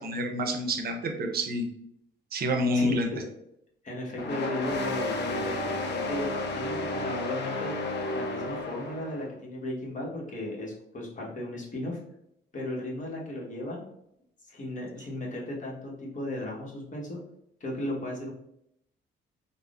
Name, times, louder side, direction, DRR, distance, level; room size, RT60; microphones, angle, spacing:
voice 1, 0.0-1.7 2.3-3.1, equal, 50° right, 4 dB, 0.6 m, -28 dB
voice 2, 2.7-3.3 3.8-6.3 6.5-7.7 8.1-12.0 12.5-13.8 14.4-17.2 17.6-18.3, left 1 dB, 40° left, -3 dB, 1.1 m, -35 dB
sound 1, 4.2-9.3, left 2 dB, 60° left, 0.5 m, -32 dB
3.4 x 2.0 x 2.4 m, 0.76 s
cardioid pair, 90°, 20 cm